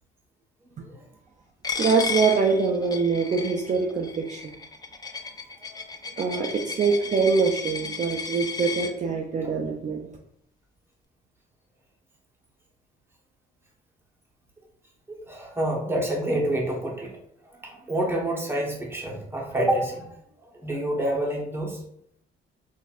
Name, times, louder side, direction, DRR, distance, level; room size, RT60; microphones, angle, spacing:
Coin (dropping), 1.6-8.9, left 5 dB, 20° left, 0.4 m, -34 dB
voice 1, 1.8-4.5 6.2-10.1, right 5 dB, 40° right, 0 dB, 0.5 m, -24 dB
voice 2, 15.1-17.1 17.6-20.1 20.4-21.8, right 1 dB, 10° right, -1 dB, 1.0 m, -28 dB
4.0 x 2.5 x 2.5 m, 0.71 s
cardioid pair, 90°, 20 cm